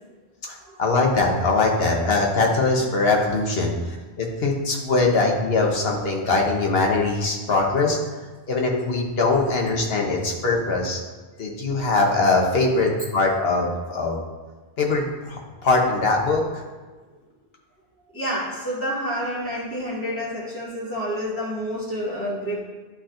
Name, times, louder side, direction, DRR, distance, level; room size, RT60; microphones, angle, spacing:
voice 1, 0.4-3.7 4.2-8.0 8.5-11.0 11.4-14.2 14.8-16.4, left 3 dB, 70° left, 0 dB, 1.3 m, -22 dB
voice 2, 18.1-22.6, equal, 10° left, -8 dB, 2.0 m, -28 dB
10.5 x 4.3 x 2.6 m, 1.3 s
omnidirectional pair, 1.1 m